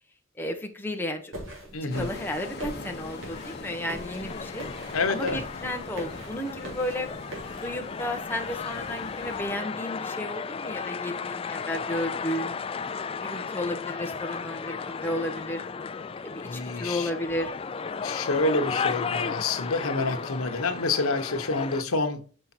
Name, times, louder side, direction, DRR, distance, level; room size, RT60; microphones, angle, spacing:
voice 1, 0.4-1.5 1.9-4.7 5.1-7.1 7.6-12.6 13.1-15.6 16.2-17.5, left 1 dB, 10° left, 1.1 m, -33 dB
sound 1, 1.3-7.7, equal, 65° right, 3.2 m, -42 dB
voice 2, 1.7-2.1 4.9-5.4 16.4-17.1 18.0-22.2, left 3 dB, 90° left, 1.2 m, -28 dB
sound 2, 1.9-9.5, left 3 dB, 50° left, 1.2 m, -42 dB
sound 3, 2.0-21.8, left 5 dB, 25° left, 0.3 m, -35 dB
6.4 x 5.6 x 4.3 m
head